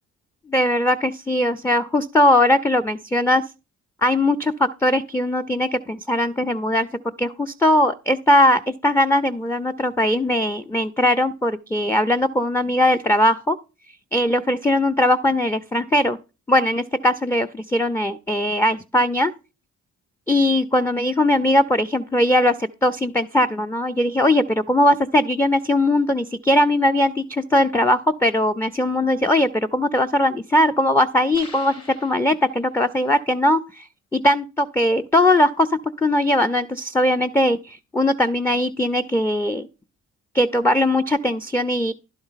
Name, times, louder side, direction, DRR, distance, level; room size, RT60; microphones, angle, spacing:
voice 1, 0.5-3.4 4.0-6.9 7.2-13.6 14.1-16.2 16.5-19.3 20.3-31.7 32.0-39.7 40.3-41.9, left 1 dB, 10° left, 9 dB, 0.4 m, -20 dB
sound 1, 31.3-32.9, left 2 dB, 50° left, 3.1 m, -43 dB
11.0 x 4.5 x 5.6 m, 0.31 s
cardioid pair, 90°, 30 cm